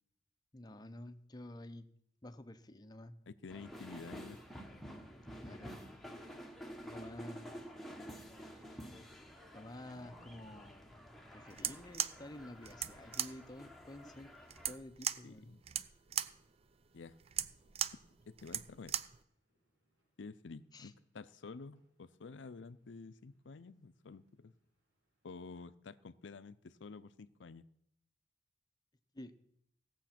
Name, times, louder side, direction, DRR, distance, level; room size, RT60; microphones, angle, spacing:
voice 1, 0.5-1.9 2.2-3.2 5.3-5.8 6.8-7.5 8.4-8.8 9.5-14.3 14.6-15.6 20.7-20.9 29.1-29.3, left 1 dB, 20° left, 9 dB, 0.7 m, -51 dB
voice 2, 3.3-4.4 15.2-15.6 16.9-17.2 18.3-19.0 20.2-24.5 25.2-27.7, left 4 dB, 75° left, 14 dB, 0.6 m, -50 dB
sound 1, 3.5-14.8, equal, ahead, 1.0 m, -50 dB
sound 2, 7.4-25.5, right 1 dB, 70° right, 4.2 m, -71 dB
sound 3, 11.5-19.2, right 10 dB, 30° right, 0.4 m, -39 dB
17.0 x 7.2 x 5.9 m, 0.75 s
head